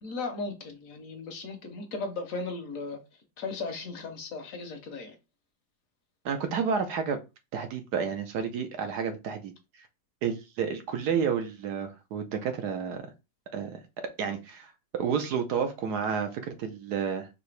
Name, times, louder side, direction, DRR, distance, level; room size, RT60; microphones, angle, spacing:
voice 1, 0.0-3.0 3.4-5.2, left 3 dB, 60° left, 6 dB, 1.1 m, -36 dB
voice 2, 6.2-7.2 7.5-9.5 10.2-13.0 13.5-13.8 14.2-17.3, right 6 dB, 80° right, 6 dB, 1.3 m, -30 dB
4.8 x 2.7 x 3.2 m, 0.26 s
omnidirectional pair, 1.7 m